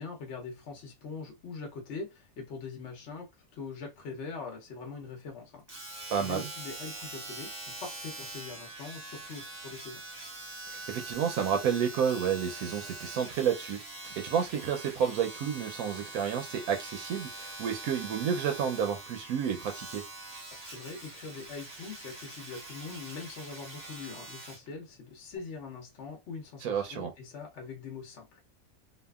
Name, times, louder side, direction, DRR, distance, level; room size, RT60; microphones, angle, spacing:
voice 1, 0.0-5.6 6.2-10.0 20.6-28.4, left 4 dB, 60° left, 1.0 m, -42 dB
Domestic sounds home sounds, 5.7-24.7 25.4-25.5, right 2 dB, 30° right, 0.9 m, -44 dB
voice 2, 6.1-6.5 10.7-13.8 14.0-20.0 26.6-27.1, right 8 dB, 90° right, 1.1 m, -30 dB
2.7 x 2.4 x 2.3 m
omnidirectional pair, 1.5 m